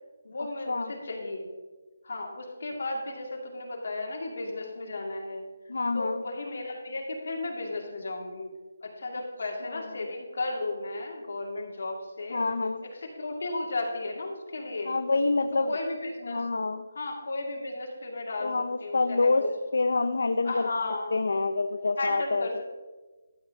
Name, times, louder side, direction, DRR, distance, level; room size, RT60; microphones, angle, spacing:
voice 1, 0.2-1.5 2.0-5.4 5.9-8.5 8.8-12.4 12.8-14.9 15.7-16.5 17.0-18.5 18.8-19.5 20.4-21.1 22.0-22.6, left 2 dB, 60° left, 1 dB, 2.2 m, -34 dB
voice 2, 5.7-6.2 9.7-9.9 12.3-12.8 14.9-15.8 16.2-16.9 18.4-19.5 19.7-20.7 21.1-22.5, left 3 dB, 75° left, 10 dB, 0.5 m, -27 dB
12.0 x 7.6 x 3.7 m, 1.3 s
hypercardioid pair, 170°, 0 cm